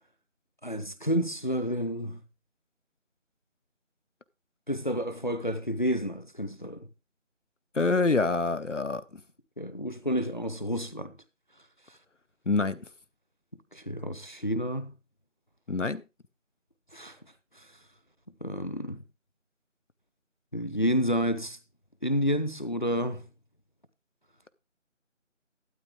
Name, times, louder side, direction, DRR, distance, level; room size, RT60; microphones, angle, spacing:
voice 1, 0.6-2.2 4.7-6.9 9.6-11.2 13.7-14.9 16.9-17.2 17.5-17.7 18.4-19.0 20.5-21.6 22.0-23.2, equal, 40° left, 0.8 m, -30 dB
voice 2, 7.7-9.2 12.5-12.9 15.7-16.0, left 3 dB, 70° left, 0.9 m, -26 dB
12.5 x 8.6 x 3.6 m
figure-of-eight pair, 170°, 38 cm